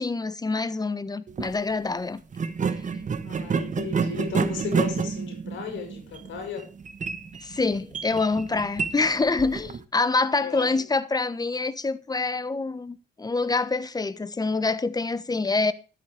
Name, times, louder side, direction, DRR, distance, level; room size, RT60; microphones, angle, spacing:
voice 1, 0.0-2.2 7.4-15.7, left 3 dB, 20° left, 1.2 m, -26 dB
sound 1, 1.3-1.5 2.3-9.8, right 5 dB, 40° right, 1.3 m, -29 dB
voice 2, 3.2-6.7 10.3-10.7, left 6 dB, 75° left, 5.8 m, -35 dB
12.5 x 9.3 x 4.9 m
cardioid pair, 90°, 20 cm